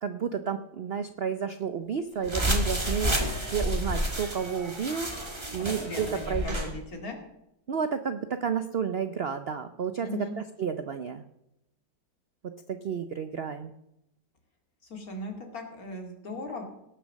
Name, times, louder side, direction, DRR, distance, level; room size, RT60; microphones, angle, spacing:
voice 1, 0.0-5.1 5.5-6.8 7.7-11.2 12.7-13.7, right 7 dB, 80° right, 9 dB, 0.5 m, -31 dB
sound 1, 2.2-6.7, equal, 15° right, 1.6 m, -30 dB
voice 2, 5.6-7.2 10.0-10.4 14.9-16.6, left 2 dB, 50° left, 3 dB, 2.7 m, -38 dB
18.0 x 6.8 x 6.4 m, 0.83 s
omnidirectional pair, 1.9 m